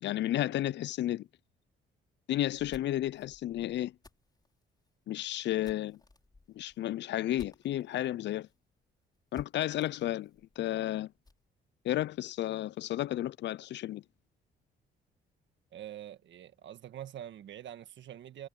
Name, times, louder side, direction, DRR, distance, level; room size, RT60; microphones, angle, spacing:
voice 1, 0.0-1.3 2.3-3.9 5.1-6.0 6.5-8.5 9.3-10.3 10.6-11.1 11.8-14.0, left 13 dB, 65° left, 0.5 m, -32 dB
sound 1, 2.4-8.1 8.5-8.6 8.8-8.9 9.3-11.5, left 3 dB, 20° left, 4.5 m, -56 dB
voice 2, 15.7-18.5, right 11 dB, 70° right, 1.6 m, -45 dB
cardioid pair, 90°, 20 cm